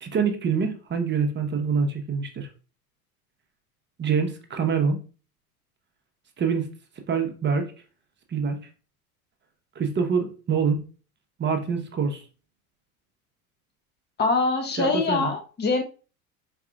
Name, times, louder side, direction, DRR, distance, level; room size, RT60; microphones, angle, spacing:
voice 1, 0.0-2.5 4.0-5.0 6.4-6.7 7.1-7.7 8.3-8.6 9.7-10.8 11.4-12.2 14.8-15.3, right 6 dB, 25° right, 1.0 m, -25 dB
voice 2, 14.2-15.8, left 3 dB, 25° left, 1.0 m, -23 dB
4.7 x 4.3 x 2.4 m
figure-of-eight pair, 75°, 43 cm